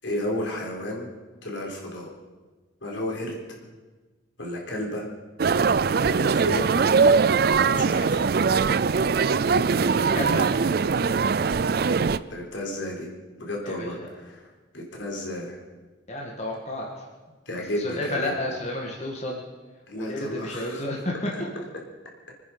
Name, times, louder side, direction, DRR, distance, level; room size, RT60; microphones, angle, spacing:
voice 1, 0.0-1.1 1.4-2.1 2.8-3.4 4.4-5.1 6.0-6.8 7.6-8.3 12.3-13.1 13.4-15.6 17.5-18.3 19.9-20.9, left 1 dB, 75° left, -1 dB, 4.0 m, -32 dB
sound 1, 5.4-12.2, right 5 dB, 50° right, 0.4 m, -21 dB
voice 2, 9.5-10.5 13.6-14.1 16.1-17.1 17.8-19.4 19.9-21.3, left 1 dB, 35° left, -2 dB, 1.9 m, -31 dB
25.5 x 9.6 x 5.5 m, 1.3 s
head